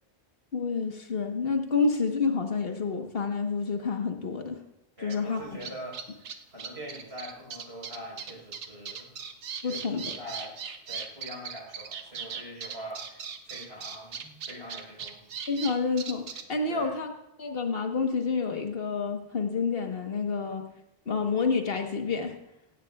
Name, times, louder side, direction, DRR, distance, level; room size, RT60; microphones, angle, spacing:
voice 1, 0.5-4.6 5.0-5.6 9.6-10.1 15.5-16.2 16.5-17.1 17.4-20.6 21.1-22.3, left 4 dB, 60° left, 4 dB, 1.4 m, -28 dB
voice 2, 5.0-9.1 9.7-10.5 10.9-15.3 16.7-16.9, equal, 65° right, -2 dB, 4.6 m, -43 dB
sound 1, 5.1-5.2 5.6-16.4, right 6 dB, 85° right, 1.1 m, -38 dB
16.5 x 16.0 x 2.3 m, 0.84 s
omnidirectional pair, 1.1 m